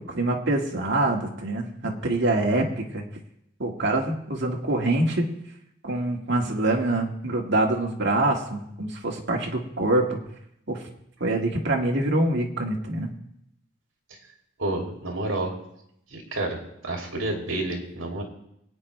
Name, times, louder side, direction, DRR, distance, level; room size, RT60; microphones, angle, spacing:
voice 1, 0.1-3.0 3.6-5.3 5.8-10.2 10.7-10.8 11.2-13.1, right 2 dB, 60° right, 1 dB, 1.9 m, -25 dB
voice 2, 14.6-15.5 16.1-18.2, right 2 dB, 75° right, 1 dB, 2.8 m, -29 dB
22.5 x 9.2 x 3.3 m, 0.77 s
head